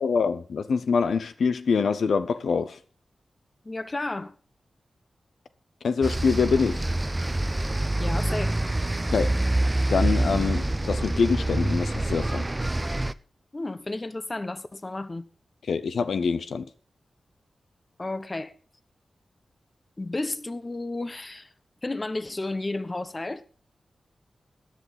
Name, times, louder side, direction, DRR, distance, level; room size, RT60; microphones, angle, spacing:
voice 1, 0.0-2.8 5.8-6.8 9.1-9.3 9.9-12.5 15.7-16.7, left 5 dB, 85° left, 0.6 m, -25 dB
voice 2, 3.6-4.4 8.0-8.6 13.5-15.3 18.0-18.5 20.0-21.5 21.8-23.4, left 2 dB, 30° left, 1.0 m, -32 dB
sound 1, 6.0-13.1, right 1 dB, 20° right, 0.6 m, -26 dB
13.0 x 10.5 x 4.1 m
cardioid pair, 60°, 0 cm